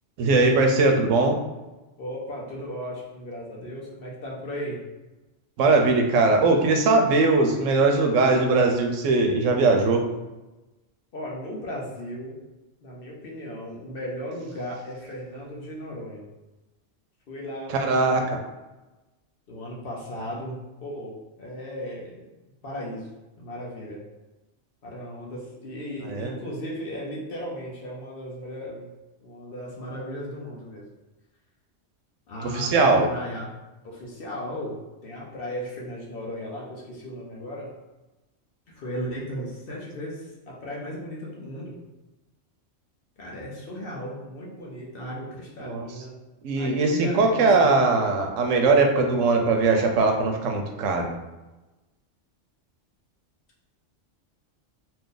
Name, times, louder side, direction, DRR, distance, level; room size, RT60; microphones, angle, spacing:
voice 1, 0.2-1.4 5.6-10.1 17.7-18.4 26.0-26.4 32.4-33.1 45.6-45.9 46.4-51.2, right 3 dB, 85° right, 3 dB, 0.9 m, -20 dB
voice 2, 2.0-4.8 11.1-12.4 12.8-16.3 17.3-18.3 19.5-22.1 22.6-23.1 23.4-24.0 24.8-28.9 29.2-30.9 32.3-33.5 33.8-37.7 38.7-41.8 43.2-46.2 46.6-48.1, equal, 55° left, -3 dB, 0.8 m, -36 dB
2.8 x 2.6 x 3.7 m, 1.1 s
omnidirectional pair, 1.3 m